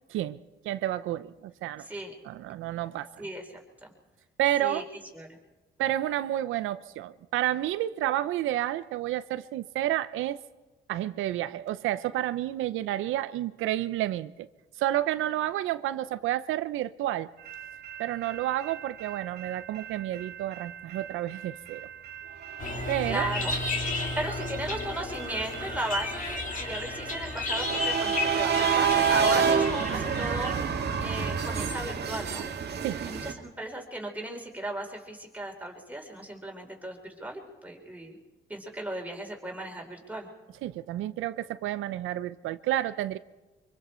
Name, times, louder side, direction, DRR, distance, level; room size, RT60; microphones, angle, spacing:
voice 1, 0.6-1.9 2.2-3.1 4.4-4.9 5.8-10.4 10.9-14.5 14.8-17.3 18.0-21.8 22.9-23.3 32.8-33.0 40.6-43.2, right 13 dB, 90° right, 13 dB, 0.7 m, -30 dB
voice 2, 1.8-2.1 3.2-3.9 4.6-4.8 5.1-5.3 23.0-23.5 24.2-32.4 33.1-38.2 38.5-40.3, right 1 dB, 10° right, 1 dB, 4.1 m, -36 dB
sound 1, 17.5-33.3, right 7 dB, 55° right, 2.0 m, -30 dB
sound 2, 22.6-30.5, left 3 dB, 40° left, 3.0 m, -33 dB
24.5 x 24.0 x 4.4 m, 1.2 s
cardioid pair, 90°, 20 cm